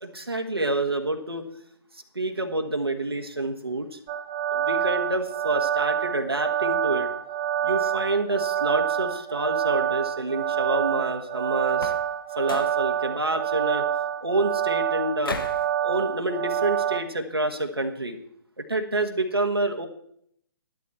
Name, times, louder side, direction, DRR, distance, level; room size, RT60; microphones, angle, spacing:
voice 1, 0.0-1.5 2.1-4.0 4.5-7.1 7.6-11.9 12.4-13.8 14.2-15.4 15.8-18.2 18.6-19.9, right 2 dB, 90° right, 3 dB, 1.5 m, -28 dB
sound 1, 4.1-17.0, right 10 dB, 25° right, 0.8 m, -27 dB
sound 2, 11.7-12.1 12.4-12.8 15.2-15.7, left 4 dB, 65° left, 1.3 m, -35 dB
11.5 x 11.5 x 4.2 m, 0.68 s
figure-of-eight pair, 130°, 12 cm